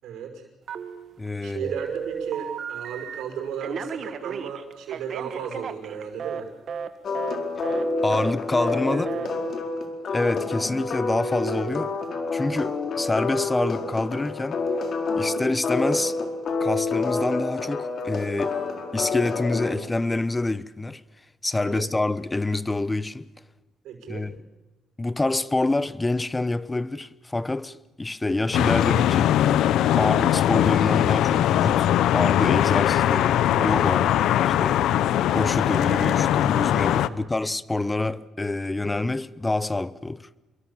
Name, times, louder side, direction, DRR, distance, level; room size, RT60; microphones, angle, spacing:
voice 1, 0.0-0.4 1.4-6.5 8.9-9.5 21.6-21.9 23.8-24.3 34.1-34.3 37.1-37.3, right 7 dB, 85° right, 5.8 m, -35 dB
Telephone, 0.7-1.3 1.6-3.2 3.6-6.4 6.7-6.9 7.1-7.4 7.6-7.8 8.1-8.3 8.6-8.8 9.1-9.3, right 6 dB, 55° right, 1.8 m, -34 dB
voice 2, 1.2-1.7 7.7-9.1 10.1-11.9 12.3-14.6 15.2-16.2 16.6-18.6 18.9-21.0 21.4-23.3 24.1-24.3 25.0-29.4 30.0-31.9 32.1-34.8 35.3-40.3, left 2 dB, 15° left, 0.9 m, -27 dB
sound 1, 7.0-19.7, left 3 dB, 55° left, 4.4 m, -28 dB
sound 2, 28.5-37.1, left 12 dB, 85° left, 0.8 m, -21 dB
27.5 x 23.0 x 7.3 m
cardioid pair, 90°, 0 cm